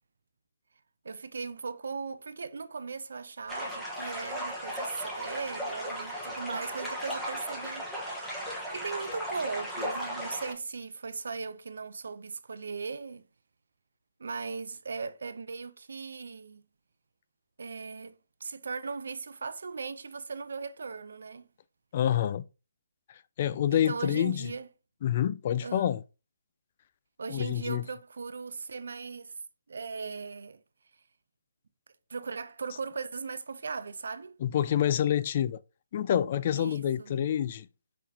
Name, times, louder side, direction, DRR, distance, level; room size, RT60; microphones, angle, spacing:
voice 1, 1.0-7.9 8.7-13.2 14.2-16.6 17.6-21.5 23.7-24.7 25.6-25.9 27.2-29.3 29.7-30.6 32.1-34.4 36.5-37.1, right 4 dB, 70° right, 0.5 m, -38 dB
sound 1, 3.5-10.5, equal, 5° left, 1.2 m, -36 dB
voice 2, 21.9-22.4 23.4-24.5 25.0-26.0 27.3-27.9 34.4-35.6 35.9-37.7, left 10 dB, 40° left, 0.3 m, -27 dB
4.9 x 3.8 x 2.7 m
hypercardioid pair, 155°, 0 cm